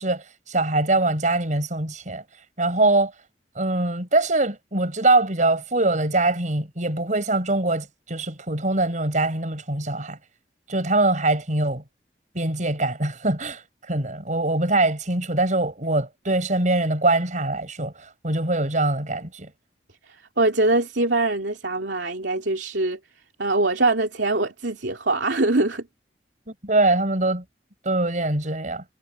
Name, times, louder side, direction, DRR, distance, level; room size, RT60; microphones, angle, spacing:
voice 1, 0.0-2.2 2.6-3.1 3.6-10.2 10.7-11.8 12.3-19.5 26.6-27.4 27.8-28.8, right 2 dB, 45° right, 6.0 m, -23 dB
voice 2, 20.1-23.0 23.4-25.9, right 2 dB, 75° right, 2.7 m, -23 dB
head